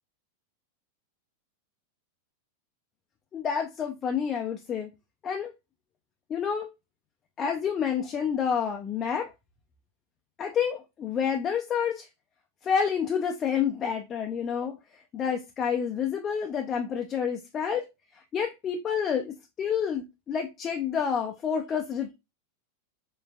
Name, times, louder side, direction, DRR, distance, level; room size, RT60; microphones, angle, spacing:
voice 1, 3.3-4.9 5.2-5.5 6.3-6.7 7.4-9.3 10.4-12.1 12.6-14.8 15.1-17.9 18.1-22.1, left 7 dB, 25° left, 0.5 m, -29 dB
5.2 x 3.2 x 2.3 m
figure-of-eight pair, 90°, 0 cm